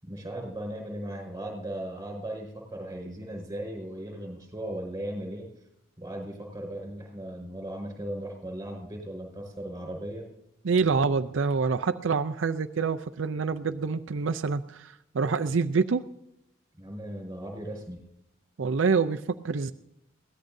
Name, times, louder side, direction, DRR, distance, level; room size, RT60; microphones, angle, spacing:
voice 1, 0.0-5.5 6.0-10.3 16.8-18.1, right 1 dB, 15° right, 0 dB, 5.3 m, -37 dB
voice 2, 10.6-16.0 18.6-19.7, right 5 dB, 80° right, 7 dB, 0.5 m, -26 dB
22.0 x 17.0 x 2.7 m, 0.80 s
head